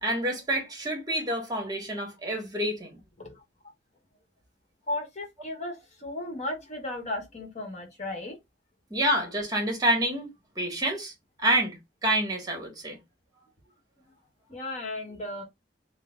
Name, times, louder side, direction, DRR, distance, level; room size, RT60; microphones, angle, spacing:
voice 1, 0.0-3.0 8.9-10.3 10.5-11.1 11.4-13.0, right 1 dB, 20° right, 1.5 m, -28 dB
voice 2, 4.9-8.4 14.5-15.4, left 2 dB, 40° left, 1.1 m, -35 dB
3.8 x 2.1 x 3.8 m
head